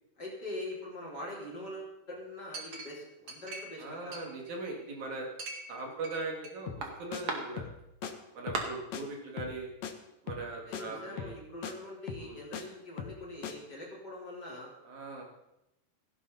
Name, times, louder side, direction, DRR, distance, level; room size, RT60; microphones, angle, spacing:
voice 1, 0.2-4.2 8.4-8.7 10.7-14.7, left 1 dB, 30° left, -4 dB, 4.6 m, -43 dB
Chink clink, 2.5-3.8 4.1-4.9 5.4-6.5 6.8-7.4 8.0-8.1 8.5-8.6, right 3 dB, 45° right, 2.8 m, -39 dB
voice 2, 3.8-5.3 5.7-7.7 8.3-9.7 10.2-11.4 12.2-12.4 14.9-15.2, right 3 dB, 65° right, 0 dB, 3.8 m, -40 dB
sound 1, 6.7-6.9 7.1-7.2 7.6-7.8 8.0-8.1 8.5-8.7 8.9-9.0 9.4-9.6 9.8-9.9 10.3-10.5 10.7-10.8 11.2-11.4 11.6-11.7 12.1-12.6 13.0-13.2 13.4-13.5, left 8 dB, 65° left, 2.3 m, -39 dB
17.0 x 15.5 x 4.2 m, 0.87 s
omnidirectional pair, 3.8 m